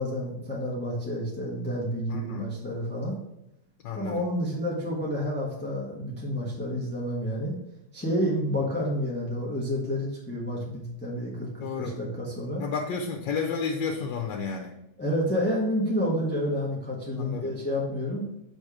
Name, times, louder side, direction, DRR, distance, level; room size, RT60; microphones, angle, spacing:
voice 1, 0.0-3.2 3.9-7.6 7.9-12.6 15.0-18.2, equal, 5° left, -4 dB, 1.0 m, -29 dB
voice 2, 2.1-2.5 3.8-4.2 11.6-12.0 12.6-14.7 17.2-17.5, left 5 dB, 80° left, 2 dB, 1.4 m, -31 dB
6.7 x 3.6 x 4.9 m, 0.84 s
omnidirectional pair, 1.9 m